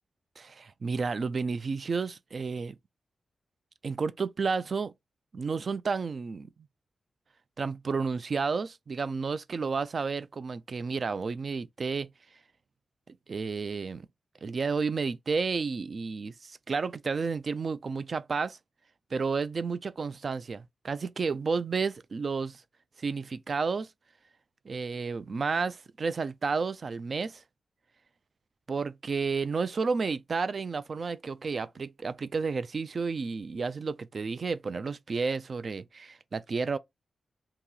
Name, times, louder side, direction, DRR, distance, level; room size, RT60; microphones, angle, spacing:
voice 1, 0.4-2.8 3.8-4.9 5.3-6.5 7.6-12.1 13.1-14.1 14.4-18.6 19.1-22.6 23.0-23.9 24.7-27.4 28.7-36.8, right 4 dB, 45° right, 0.3 m, -31 dB
2.9 x 2.8 x 3.7 m
wide cardioid pair, 140°, 0 cm